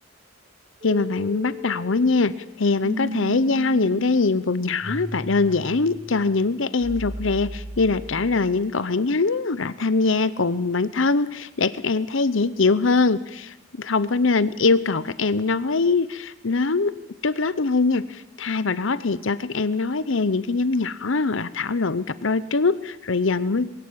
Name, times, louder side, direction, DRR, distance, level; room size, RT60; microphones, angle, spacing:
voice 1, 0.8-2.3 2.6-17.0 17.2-23.7, left 3 dB, 65° left, 16 dB, 0.8 m, -22 dB
sound 1, 0.8-8.7, left 1 dB, 40° right, 1.9 m, -36 dB
21.5 x 17.0 x 8.8 m, 0.89 s
head